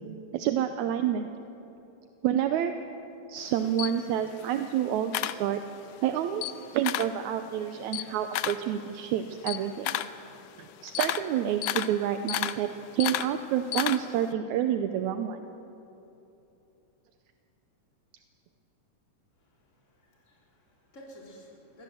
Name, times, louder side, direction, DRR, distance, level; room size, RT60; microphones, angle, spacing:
voice 1, 0.3-1.3 2.2-2.7 3.3-5.6 6.0-10.0 10.6-15.4, right 10 dB, 75° right, 8 dB, 2.0 m, -29 dB
Camera, 3.4-6.0 6.3-7.2 7.6-14.3, left 14 dB, 90° left, 2.2 m, -33 dB
voice 2, 19.4-21.8, equal, 20° left, -3 dB, 4.2 m, -53 dB
23.5 x 17.5 x 7.9 m, 2.9 s
omnidirectional pair, 3.6 m